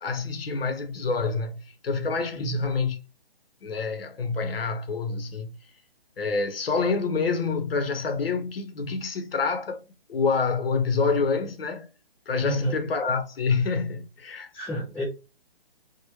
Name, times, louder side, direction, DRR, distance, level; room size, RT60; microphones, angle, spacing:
voice 1, 0.0-3.0 3.6-5.5 6.2-9.8 10.1-11.9 12.3-14.5, left 4 dB, 70° left, 0.7 m, -27 dB
voice 2, 2.3-2.7 12.4-12.8 14.5-15.0, right 1 dB, 5° left, 0.9 m, -30 dB
2.8 x 2.1 x 3.0 m
hypercardioid pair, 155°, 30 cm